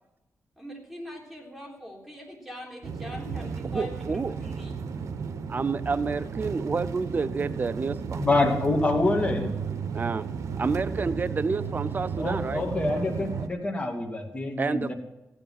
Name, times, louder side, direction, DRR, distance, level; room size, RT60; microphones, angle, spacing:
voice 1, 0.6-4.8, equal, ahead, -1 dB, 3.7 m, -42 dB
sound 1, 2.8-13.5, right 6 dB, 85° right, 0.8 m, -34 dB
voice 2, 3.7-4.3 5.5-8.3 9.9-10.2 10.6-12.6 14.6-14.9, right 4 dB, 35° right, 12 dB, 0.6 m, -29 dB
voice 3, 8.2-9.5 12.2-14.9, left 2 dB, 25° left, 1 dB, 2.4 m, -26 dB
15.0 x 9.8 x 5.9 m, 0.99 s
cardioid pair, 95°, 5 cm